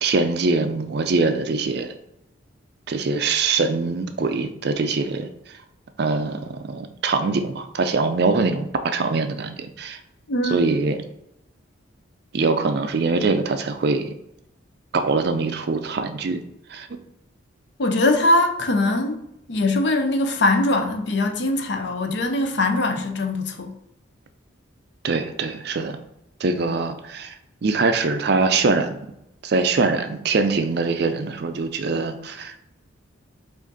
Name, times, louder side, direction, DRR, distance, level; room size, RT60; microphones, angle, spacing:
voice 1, 0.0-1.9 2.9-5.3 6.0-10.0 10.5-11.0 12.3-14.1 14.9-16.4 16.7-17.0 25.0-26.0 26.4-27.3 27.6-29.0 29.4-32.6, right 3 dB, 50° right, 0.4 m, -23 dB
voice 2, 10.3-10.7 17.8-19.2 19.5-23.7, left 2 dB, 55° left, 0.6 m, -21 dB
4.9 x 2.5 x 4.0 m
head